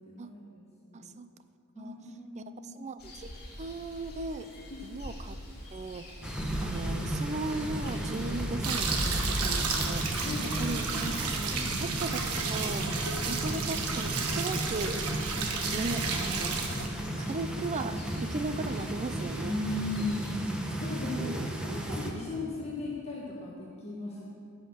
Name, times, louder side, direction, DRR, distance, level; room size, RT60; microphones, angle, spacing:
voice 1, 0.0-1.1 1.7-2.6 4.7-4.8 10.2-10.7 11.2-11.8 16.6-17.3 19.4-24.2, left 2 dB, 30° left, -4 dB, 1.3 m, -38 dB
voice 2, 0.9-1.3 1.8-1.9 2.4-3.3 3.6-4.5 4.8-5.4 5.7-6.2 6.6-15.0 15.7-16.6 17.2-19.6 21.0-21.5, right 3 dB, 30° right, 11 dB, 0.5 m, -37 dB
sound 1, 3.0-20.4, equal, 45° left, 2.4 m, -42 dB
sound 2, 6.2-22.1, right 1 dB, 5° right, 1.0 m, -35 dB
sound 3, 8.6-16.9, right 5 dB, 80° right, 1.2 m, -32 dB
15.5 x 5.7 x 6.3 m, 2.4 s
head